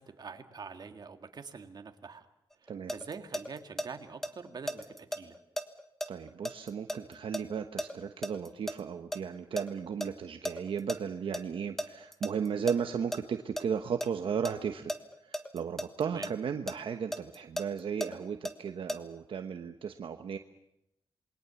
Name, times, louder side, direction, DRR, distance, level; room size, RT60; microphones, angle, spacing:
voice 1, 0.0-2.3 2.6-5.4 16.1-16.3, right 5 dB, 50° right, 6 dB, 2.0 m, -45 dB
sound 1, 2.5-3.9 4.2-8.8 9.1-11.0 11.3-11.4 11.8-13.2 13.6-14.1 14.5-16.3 16.7-19.0, equal, 5° left, 1.5 m, -35 dB
voice 2, 6.1-14.9 15.2-20.4, right 7 dB, 70° right, 6 dB, 1.1 m, -35 dB
27.5 x 22.0 x 7.1 m, 0.85 s
wide cardioid pair, 115°, 9 cm